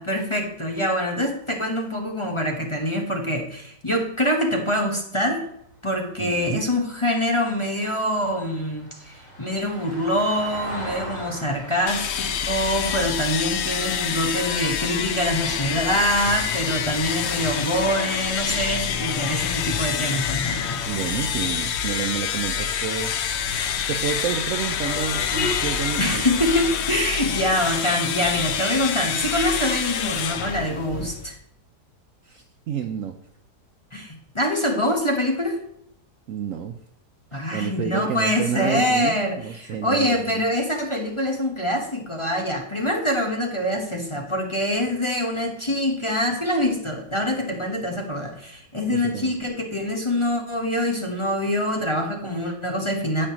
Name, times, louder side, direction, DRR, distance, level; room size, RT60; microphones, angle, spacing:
voice 1, 0.0-5.4 5.8-20.8 26.0-31.3 33.9-35.6 37.3-53.3, equal, 20° left, 1 dB, 1.0 m, -25 dB
Vehicle, 5.4-15.8 18.1-18.2, equal, 15° right, 3.8 m, -42 dB
voice 2, 6.2-6.6 20.9-23.1 23.9-26.2 32.2-33.2 36.3-36.8 37.3-40.4 48.9-49.3, right 8 dB, 70° right, 8 dB, 0.8 m, -29 dB
sound 1, 11.9-31.3, left 8 dB, 65° left, 0.7 m, -27 dB
9.9 x 8.7 x 3.0 m, 0.71 s
omnidirectional pair, 1.8 m